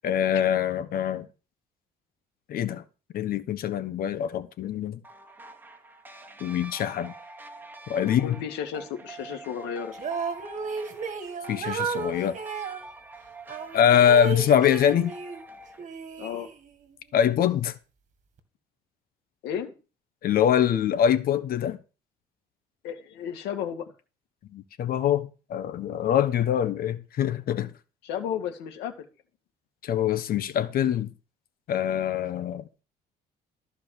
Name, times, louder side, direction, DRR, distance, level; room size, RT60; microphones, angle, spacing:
voice 1, 0.0-1.3 2.5-2.8 3.1-5.0 6.4-7.1 7.9-8.3 11.5-12.4 13.7-15.1 17.1-17.7 20.2-21.8 24.5-27.7 29.8-31.1 31.7-32.6, left 9 dB, 60° left, 1.3 m, -24 dB
sound 1, 5.0-15.8, right 2 dB, 10° right, 2.3 m, -46 dB
voice 2, 8.0-10.0 16.2-16.5 19.4-19.7 22.8-23.9 28.0-29.1, left 8 dB, 90° left, 2.0 m, -33 dB
sound 2, 9.9-12.8 13.5-15.4 15.8-16.9, right 4 dB, 45° right, 2.1 m, -33 dB
14.0 x 5.2 x 6.6 m
cardioid pair, 110°, 17 cm